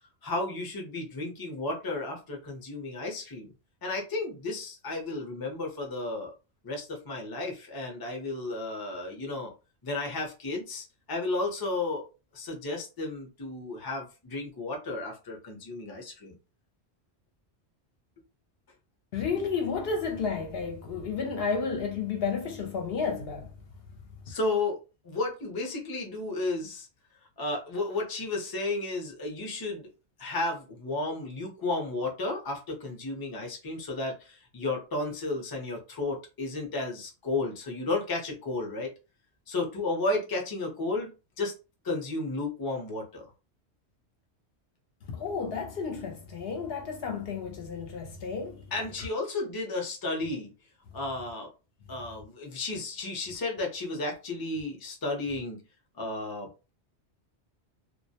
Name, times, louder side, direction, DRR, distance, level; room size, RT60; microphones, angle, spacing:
voice 1, 0.2-3.5 3.8-6.3 6.6-9.5 9.8-12.0 12.3-16.3 24.3-24.8 25.0-26.9 27.4-29.9 30.2-38.9 39.5-41.1 41.4-41.5 41.8-43.2 48.7-50.5 50.9-51.5 51.9-55.6 56.0-56.5, left 2 dB, 25° left, 0.5 m, -33 dB
voice 2, 19.1-23.5 45.1-48.7 49.0-49.1, left 5 dB, 65° left, 0.7 m, -32 dB
2.2 x 2.0 x 2.7 m
omnidirectional pair, 1.2 m